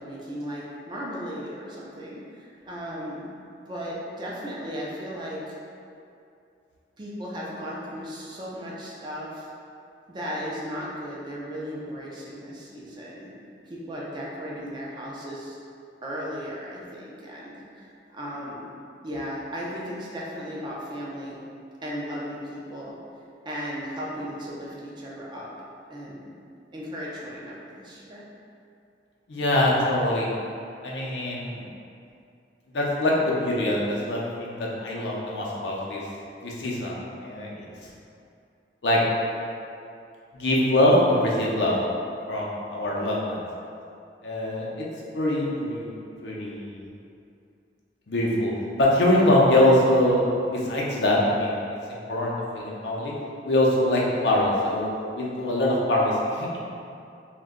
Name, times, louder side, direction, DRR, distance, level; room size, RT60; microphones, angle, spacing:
voice 1, 0.0-3.3 3.7-5.6 7.0-9.5 10.1-13.3 13.6-15.6 16.0-18.7 19.0-21.4 21.8-23.0 23.4-25.5 25.9-26.3 26.7-28.2 42.8-42.9, equal, 25° right, -5 dB, 0.4 m, -36 dB
voice 2, 29.3-30.3 30.8-31.7 32.7-36.0 36.4-37.0 37.2-37.9 38.8-39.0 40.3-41.7 42.3-43.4 44.2-44.8 45.1-45.9 46.2-46.8 48.1-48.5 48.8-51.5 51.9-53.1 53.4-54.9 55.1-56.6, left 1 dB, 80° left, -4 dB, 0.6 m, -23 dB
2.6 x 2.2 x 3.6 m, 2.5 s
head